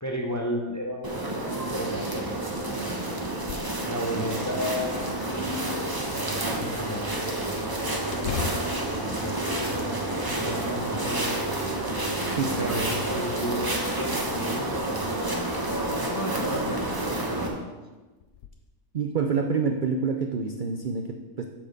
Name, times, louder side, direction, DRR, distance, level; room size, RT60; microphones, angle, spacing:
voice 1, 0.0-2.6 3.8-8.0 9.2-9.9 10.3-11.4 12.6-15.5 15.9-17.6, equal, 20° left, 0 dB, 0.6 m, -34 dB
sound 1, 1.0-17.5, right 1 dB, 20° right, 0.9 m, -29 dB
sound 2, 3.3-3.8 4.2-4.3 4.9-5.7 8.1-10.1 10.5-11.2 11.8-12.7 13.6-14.3 15.7-15.8 16.4-16.6 17.1-17.2 18.2-18.5, left 7 dB, 70° left, 0.9 m, -38 dB
sound 3, 4.2-13.1, right 2 dB, 50° left, 2.5 m, -43 dB
voice 2, 12.3-12.8 18.9-21.4, right 5 dB, 60° right, 5 dB, 0.5 m, -27 dB
8.4 x 4.3 x 6.6 m, 1.2 s
omnidirectional pair, 1.5 m